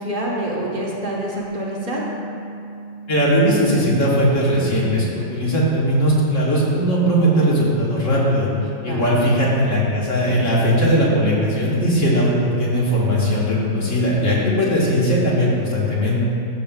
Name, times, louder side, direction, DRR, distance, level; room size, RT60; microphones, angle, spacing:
voice 1, 0.0-2.1 8.9-9.1, right 1 dB, 45° right, -5 dB, 1.4 m, -26 dB
sound 1, 1.3-4.7, right 1 dB, 60° right, 1.3 m, -36 dB
voice 2, 3.1-8.5 8.8-16.2, equal, 75° left, -6 dB, 2.0 m, -19 dB
13.0 x 7.1 x 2.4 m, 2.6 s
omnidirectional pair, 1.3 m